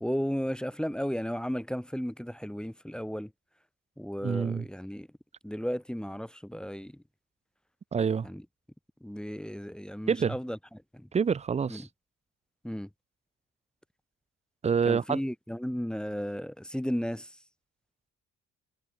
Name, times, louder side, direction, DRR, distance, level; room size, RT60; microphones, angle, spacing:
voice 1, 0.0-3.3 4.0-5.1 5.4-7.0 8.2-8.4 9.0-10.6 10.9-11.1 11.7-11.9 12.6-12.9 14.9-17.4, equal, ahead, 0.9 m, -34 dB
voice 2, 4.2-4.7 7.9-8.3 10.1-10.4 11.1-11.9 14.6-15.2, right 6 dB, 20° right, 0.4 m, -27 dB
hypercardioid pair, 45°, 39 cm